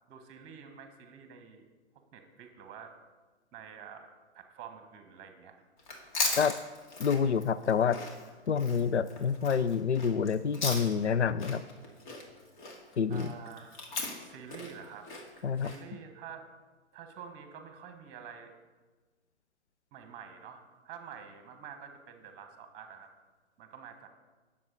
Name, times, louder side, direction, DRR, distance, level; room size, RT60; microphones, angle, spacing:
voice 1, 0.1-1.7 2.1-3.0 3.5-4.1 4.3-5.6 6.6-6.7 13.1-13.8 14.2-15.1 15.5-16.5 16.9-18.5 19.9-23.1 23.6-24.1, right 7 dB, 25° right, 7 dB, 1.5 m, -48 dB
Chewing mastication, 5.8-11.1 11.4-15.8, left 3 dB, 45° left, 2.7 m, -38 dB
voice 2, 7.0-8.0 8.5-11.6 13.0-13.3 15.4-15.7, left 6 dB, 75° left, 14 dB, 0.6 m, -27 dB
19.0 x 7.5 x 4.0 m, 1.3 s
figure-of-eight pair, 120°, 34 cm